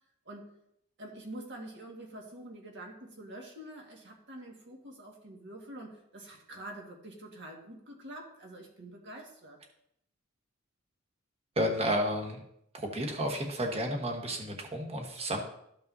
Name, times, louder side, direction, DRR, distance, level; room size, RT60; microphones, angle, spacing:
voice 1, 1.0-9.6, right 1 dB, 55° right, 0 dB, 1.8 m, -46 dB
voice 2, 11.6-12.4 12.7-15.4, equal, 30° right, 1 dB, 1.2 m, -31 dB
13.5 x 5.4 x 2.7 m, 0.75 s
head